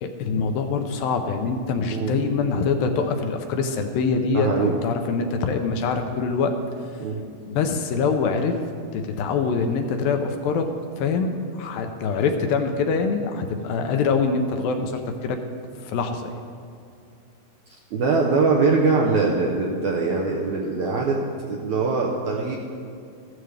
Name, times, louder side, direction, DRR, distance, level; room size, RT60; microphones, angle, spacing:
voice 1, 0.0-6.6 7.5-8.6 8.9-10.7 11.0-15.4 15.8-16.3, left 5 dB, 75° left, 5 dB, 2.3 m, -24 dB
voice 2, 4.3-4.7 7.0-7.2 17.9-22.6, right 4 dB, 75° right, -2 dB, 1.8 m, -22 dB
14.5 x 12.5 x 3.4 m, 2.5 s
omnidirectional pair, 4.4 m